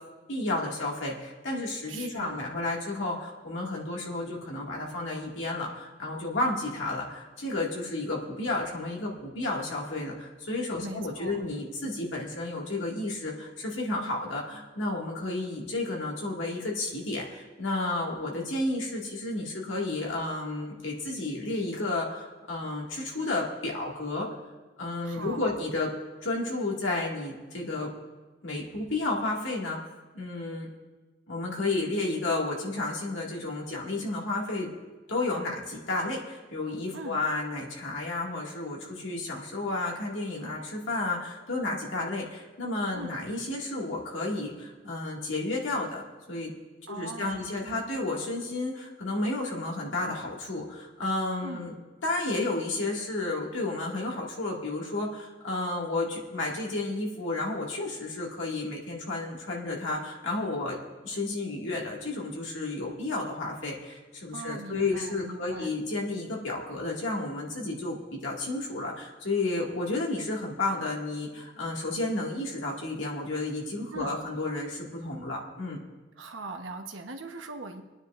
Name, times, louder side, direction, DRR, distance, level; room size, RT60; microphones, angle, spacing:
voice 1, 0.3-24.3 24.8-25.9 26.2-27.9 28.4-29.8 30.1-30.7 31.3-34.7 35.1-46.5 46.9-51.7 52.0-60.8 61.0-75.8, left 2 dB, 85° left, -2 dB, 2.1 m, -32 dB
voice 2, 1.9-2.5 10.8-11.4 25.0-25.5 36.9-37.2 42.9-43.1 46.9-47.9 51.4-51.7 64.3-65.7 73.9-74.1 76.2-77.8, right 3 dB, 85° right, 5 dB, 1.0 m, -41 dB
27.0 x 9.6 x 2.5 m, 1.2 s
head